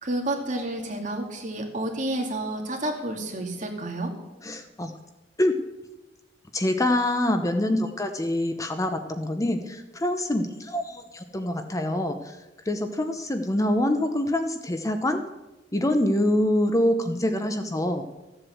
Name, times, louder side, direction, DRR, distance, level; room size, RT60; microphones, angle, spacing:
voice 1, 0.0-4.1, right 1 dB, 45° right, 2 dB, 2.3 m, -30 dB
voice 2, 4.4-4.9 5.4-5.5 6.5-12.4 12.7-15.2 15.7-18.0, left 1 dB, 20° left, 7 dB, 0.8 m, -25 dB
14.5 x 7.8 x 7.8 m, 1.0 s
head